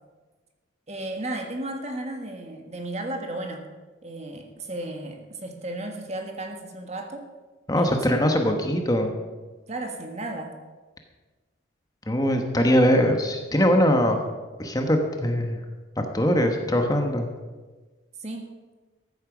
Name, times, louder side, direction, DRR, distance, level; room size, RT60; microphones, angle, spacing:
voice 1, 0.9-3.7 4.0-7.3 7.8-8.1 8.5-8.7 9.7-10.5 18.2-18.5, right 1 dB, 35° right, 4 dB, 1.5 m, -34 dB
voice 2, 7.7-9.1 12.1-14.2 14.6-15.6 16.0-17.3, equal, 20° left, 4 dB, 1.2 m, -22 dB
14.0 x 8.8 x 6.2 m, 1.3 s
head